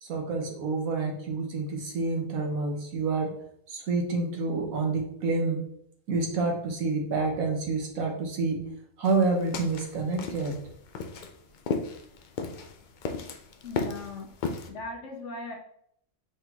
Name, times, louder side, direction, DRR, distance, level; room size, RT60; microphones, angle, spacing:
voice 1, 0.0-3.3 3.7-5.6 6.1-8.6 9.0-10.6, right 3 dB, 90° right, 2 dB, 1.4 m, -28 dB
sound 1, 9.0-14.7, left 4 dB, 90° left, 0.4 m, -35 dB
voice 2, 13.6-14.3 14.7-15.6, left 3 dB, 60° left, 1 dB, 1.2 m, -38 dB
4.8 x 3.9 x 2.8 m, 0.70 s
omnidirectional pair, 1.4 m